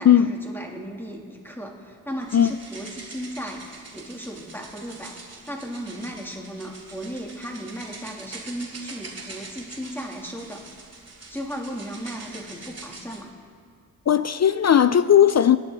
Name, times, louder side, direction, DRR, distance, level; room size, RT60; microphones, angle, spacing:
voice 1, 0.0-3.6 3.9-10.6 11.3-13.3, equal, 5° left, 2.9 m, -36 dB
sound 1, 2.2-13.2, right 3 dB, 45° right, 2.6 m, -43 dB
voice 2, 14.1-15.6, left 9 dB, 45° left, 0.4 m, -17 dB
26.5 x 10.0 x 4.0 m
cardioid pair, 60°, 37 cm